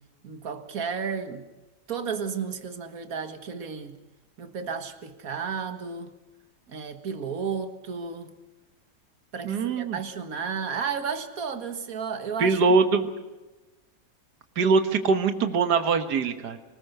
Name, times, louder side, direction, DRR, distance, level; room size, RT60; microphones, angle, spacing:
voice 1, 0.2-1.5 1.9-4.0 4.4-6.1 6.7-8.3 9.3-12.6, right 6 dB, 55° right, 2.1 m, -33 dB
voice 2, 9.4-10.0 12.4-13.1 14.6-16.6, right 4 dB, 75° right, 2.0 m, -22 dB
25.0 x 20.0 x 6.7 m
omnidirectional pair, 1.8 m